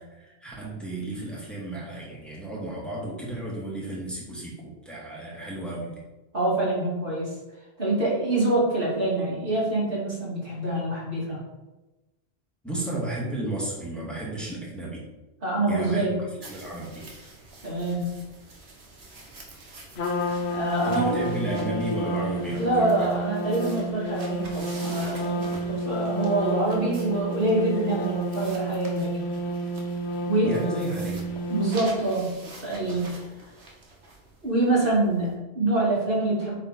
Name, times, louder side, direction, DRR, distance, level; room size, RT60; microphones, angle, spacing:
voice 1, 0.1-6.0 12.6-15.0 15.7-16.2 16.5-17.1 20.9-23.1 30.4-31.4, right 1 dB, ahead, -5 dB, 2.0 m, -33 dB
voice 2, 6.3-7.3 7.8-11.4 15.4-16.2 17.6-18.1 20.2-21.2 22.6-29.2 30.3-30.6 31.5-32.3 32.6-33.1 34.4-36.5, right 2 dB, 55° right, -7 dB, 2.9 m, -25 dB
sound 1, 16.4-35.3, right 2 dB, 80° right, 1.6 m, -47 dB
Trumpet, 20.0-32.1, right 1 dB, 80° left, 1.2 m, -30 dB
8.8 x 3.8 x 4.3 m, 1.1 s
omnidirectional pair, 1.1 m